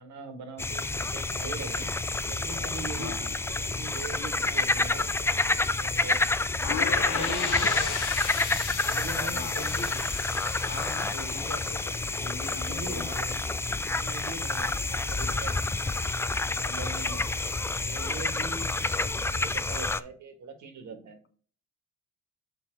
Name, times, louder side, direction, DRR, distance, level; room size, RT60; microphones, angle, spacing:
voice 1, 0.0-1.9 2.2-6.2 6.6-8.0 8.8-10.0 12.4-13.3 13.9-15.5 16.3-17.2 17.8-21.2, right 3 dB, 70° right, 6 dB, 1.8 m, -42 dB
sound 1, 0.6-20.0, left 3 dB, 10° left, 0.3 m, -29 dB
voice 2, 2.9-3.3 7.4-7.8 9.3-9.9 10.6-12.0 12.2-13.4 16.8-17.2, left 4 dB, 45° left, 8 dB, 1.1 m, -41 dB
sound 2, 6.6-12.5, left 8 dB, 75° left, 0.9 m, -36 dB
6.8 x 4.0 x 4.5 m, 0.42 s
cardioid pair, 90°, 30 cm